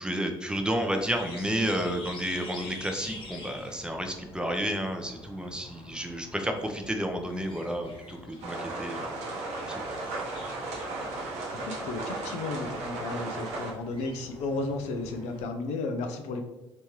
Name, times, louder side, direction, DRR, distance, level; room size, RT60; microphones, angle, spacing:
voice 1, 0.0-9.0 9.7-9.8, equal, 5° right, 4 dB, 0.6 m, -31 dB
sound 1, 0.6-15.4, left 2 dB, 40° left, 1.1 m, -47 dB
sound 2, 8.4-13.7, right 2 dB, 65° right, 0.8 m, -35 dB
voice 2, 11.7-16.4, left 3 dB, 65° left, 5 dB, 0.5 m, -33 dB
3.4 x 2.9 x 3.0 m, 0.95 s
hypercardioid pair, 50°, 12 cm